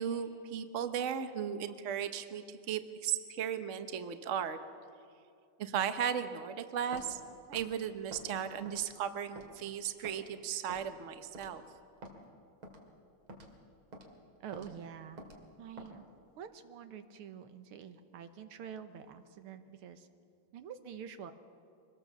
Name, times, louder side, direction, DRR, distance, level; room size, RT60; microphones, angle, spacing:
voice 1, 0.0-4.6 5.6-7.2 7.5-11.6, right 8 dB, 45° right, 9 dB, 1.1 m, -36 dB
Walk footsteps, 6.9-7.1 7.5-7.7 8.1-8.3 8.7-9.0 9.4-9.5 10.0-10.2 10.7-10.9 11.3-11.5 12.0-12.2 12.6-12.8 13.3-13.5 13.9-14.1 14.5-14.7 15.2-15.4 15.8-15.9, right 1 dB, 70° right, 3.2 m, -48 dB
voice 2, 14.4-15.2 15.6-16.0 16.4-20.1 20.5-21.3, right 8 dB, 90° right, 9 dB, 2.0 m, -47 dB
24.5 x 19.5 x 7.2 m, 2.5 s
omnidirectional pair, 2.3 m